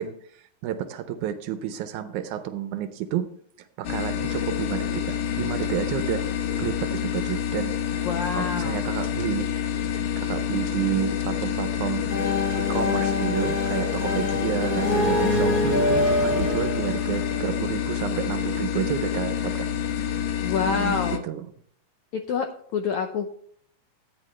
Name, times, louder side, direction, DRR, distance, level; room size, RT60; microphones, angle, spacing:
voice 1, 0.0-3.3 3.8-9.5 10.2-19.7 20.6-21.5, right 11 dB, 85° right, 9 dB, 1.7 m, -31 dB
sound 1, 3.8-21.2, left 9 dB, 70° left, 2.0 m, -28 dB
voice 2, 8.0-8.8 20.4-21.2 22.1-23.3, left 6 dB, 85° left, 5 dB, 1.6 m, -27 dB
sound 2, 12.1-17.8, left 2 dB, 40° left, 0.7 m, -26 dB
12.0 x 9.5 x 3.2 m, 0.63 s
omnidirectional pair, 4.2 m